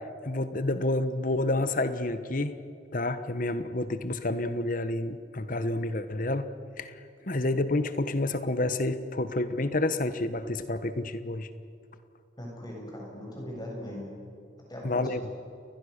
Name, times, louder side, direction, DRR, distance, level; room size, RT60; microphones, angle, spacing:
voice 1, 0.2-2.6 2.9-6.5 6.8-7.0 7.3-11.5 14.8-15.2, left 2 dB, 45° left, 11 dB, 1.2 m, -29 dB
voice 2, 12.4-14.1 14.7-15.3, left 1 dB, 20° left, -2 dB, 7.4 m, -39 dB
29.5 x 21.0 x 6.7 m, 2.5 s
head